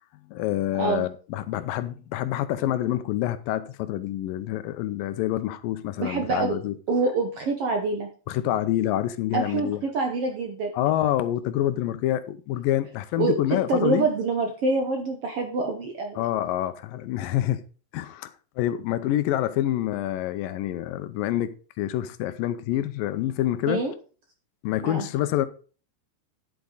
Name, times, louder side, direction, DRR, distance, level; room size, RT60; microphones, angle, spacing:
voice 1, 0.3-6.7 8.3-9.8 10.7-14.1 16.2-17.6 17.9-18.3 18.6-23.8 24.6-25.5, left 13 dB, 80° left, 2.4 m, -27 dB
voice 2, 6.0-6.6 6.9-8.1 9.3-10.7 13.2-16.2 23.7-23.9 24.8-25.1, right 3 dB, 65° right, 1.5 m, -26 dB
10.5 x 8.3 x 4.0 m
omnidirectional pair, 4.0 m